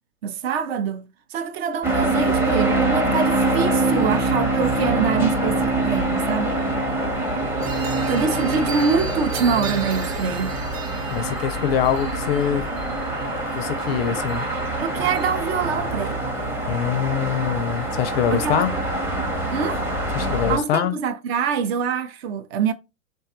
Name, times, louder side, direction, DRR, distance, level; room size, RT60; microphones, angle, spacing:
voice 1, 0.2-6.5 8.1-10.6 14.1-14.2 14.8-16.2 18.3-18.6 19.5-19.8 20.5-22.7, right 6 dB, 50° right, 0.5 m, -25 dB
sound 1, 1.8-20.6, right 2 dB, 5° right, 0.6 m, -24 dB
sound 2, 7.6-15.3, right 6 dB, 65° right, 1.0 m, -38 dB
voice 2, 11.1-12.6 13.5-14.5 16.7-18.7 20.1-21.0, left 9 dB, 45° left, 0.4 m, -23 dB
3.3 x 2.2 x 2.8 m
figure-of-eight pair, 100°, 42 cm